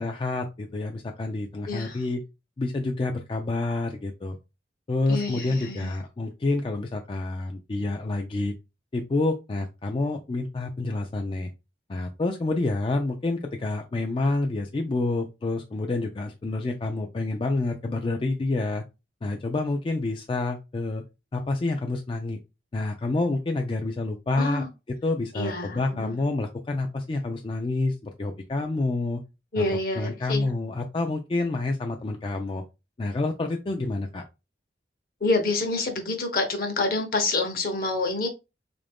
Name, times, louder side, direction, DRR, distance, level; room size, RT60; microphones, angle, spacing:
voice 1, 0.0-2.2 2.6-4.4 4.9-8.5 8.9-11.5 11.9-18.8 19.2-21.0 21.3-22.4 22.7-24.6 25.0-29.2 29.6-29.7 30.0-32.6 33.0-34.2, left 2 dB, 30° left, 0.3 m, -28 dB
voice 2, 1.7-2.0 5.1-6.0 24.3-24.7 25.3-26.2 29.5-30.5 35.2-38.3, left 3 dB, 55° left, 0.8 m, -27 dB
3.7 x 2.5 x 3.4 m
head